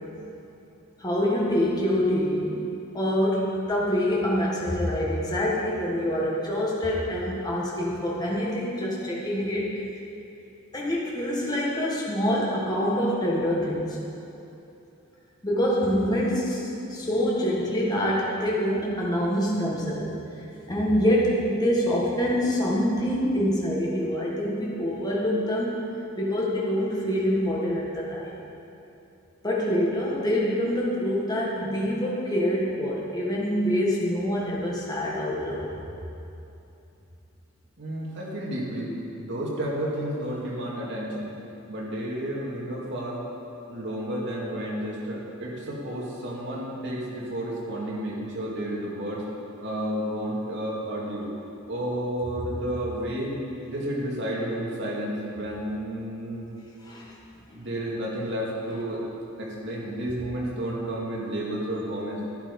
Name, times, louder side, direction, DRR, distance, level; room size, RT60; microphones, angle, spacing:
voice 1, 1.0-2.6 2.9-9.8 10.7-14.0 15.4-20.1 20.7-25.7 26.2-28.3 29.4-35.7 56.8-57.1 57.5-57.6, equal, 20° left, -5 dB, 1.7 m, -25 dB
voice 2, 37.8-38.9 39.2-41.3 41.7-43.2 43.7-49.2 49.6-51.3 51.7-53.3 53.7-56.4 57.5-59.0 59.4-62.2, right 1 dB, 55° right, -4 dB, 2.4 m, -31 dB
12.0 x 10.5 x 5.4 m, 2.8 s
head